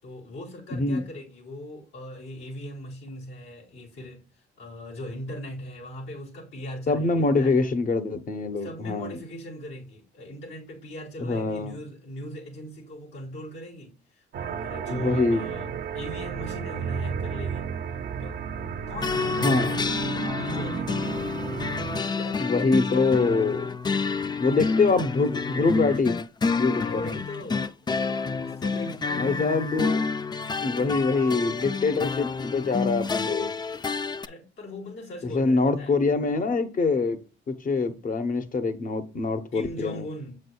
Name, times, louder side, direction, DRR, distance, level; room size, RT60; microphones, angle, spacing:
voice 1, 0.0-7.6 8.6-17.7 18.2-18.4 18.9-20.0 20.3-21.3 22.0-23.6 26.8-27.7 28.2-29.7 34.2-35.9 39.5-40.4, left 1 dB, 85° left, 4.0 m, -39 dB
voice 2, 0.7-1.0 6.9-9.2 11.2-11.8 14.9-15.4 19.4-19.7 22.4-23.7 24.4-26.2 26.6-27.0 29.2-30.1 30.6-33.5 35.2-37.2 37.5-40.0, left 3 dB, 45° left, 1.1 m, -24 dB
sound 1, 14.3-22.0, right 7 dB, 55° right, 0.7 m, -33 dB
sound 2, 19.0-34.3, left 4 dB, 20° left, 0.4 m, -29 dB
7.5 x 6.4 x 2.3 m
cardioid pair, 90°, 20 cm